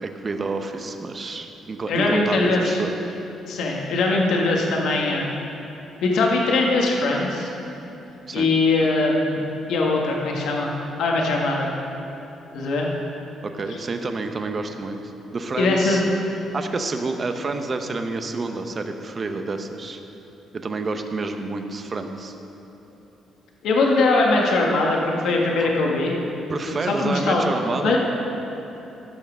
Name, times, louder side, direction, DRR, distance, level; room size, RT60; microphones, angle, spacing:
voice 1, 0.0-2.9 8.3-8.5 13.4-15.0 15.3-16.0 16.5-20.0 20.5-22.3 25.6-25.7 26.5-28.0, right 3 dB, 35° right, 6 dB, 0.8 m, -29 dB
voice 2, 1.9-2.8 3.5-5.3 6.0-7.5 8.3-9.4 9.7-10.7 11.0-11.7 12.5-12.9 15.6-16.0 23.6-25.0 25.2-26.1 26.7-27.4 27.8-28.0, left 3 dB, 75° left, -1 dB, 1.6 m, -21 dB
14.5 x 5.7 x 6.2 m, 3.0 s
cardioid pair, 115°, 0 cm